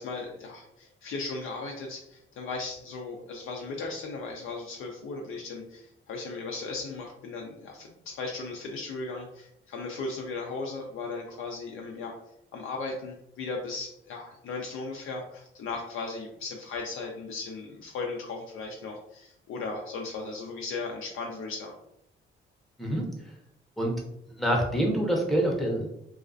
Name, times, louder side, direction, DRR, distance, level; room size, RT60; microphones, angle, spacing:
voice 1, 0.0-12.1 12.5-21.7, left 3 dB, 75° left, 0 dB, 0.4 m, -37 dB
voice 2, 24.3-25.9, right 1 dB, ahead, -1 dB, 0.7 m, -26 dB
2.4 x 2.2 x 2.4 m, 0.77 s
cardioid pair, 80°, 21 cm